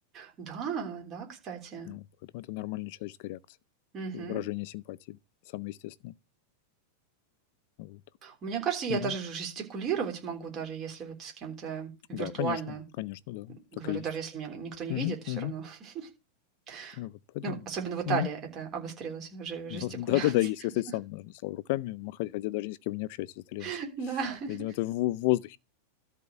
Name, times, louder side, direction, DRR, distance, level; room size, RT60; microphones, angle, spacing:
voice 1, 0.1-1.9 3.9-4.4 8.2-12.8 13.7-16.1 16.7-17.0 17.4-20.3 23.6-24.6, right 6 dB, 25° right, 3.4 m, -35 dB
voice 2, 2.3-3.4 4.1-5.2 5.5-6.1 7.8-8.0 8.9-9.1 12.1-12.6 13.0-14.0 14.9-15.5 17.0-17.6 18.1-18.3 19.7-23.7 24.5-25.6, left 17 dB, 50° left, 0.5 m, -32 dB
13.0 x 4.5 x 6.8 m
supercardioid pair, 160°, 0 cm